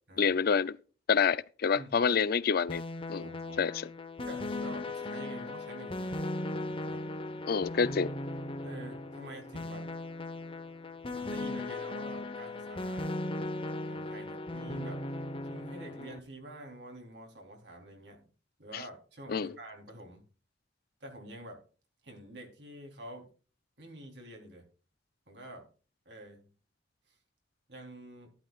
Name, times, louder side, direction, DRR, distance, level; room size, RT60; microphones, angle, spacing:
voice 1, 0.2-0.8 1.1-2.8 3.1-3.3 3.6-3.9 7.5-8.1 18.7-18.8 19.3-19.5, left 6 dB, 55° left, 0.4 m, -27 dB
voice 2, 1.7-2.1 3.2-3.6 4.2-6.2 6.9-7.0 8.6-9.9 11.1-13.1 13.8-15.0 15.5-18.3 18.6-20.2 21.0-21.6 22.0-23.3 23.8-24.6 25.3-25.7 26.1-26.5 27.7-28.3, right 1 dB, 70° right, 3.6 m, -47 dB
sound 1, 2.7-16.2, left 2 dB, 30° left, 1.0 m, -38 dB
12.0 x 12.0 x 2.4 m
head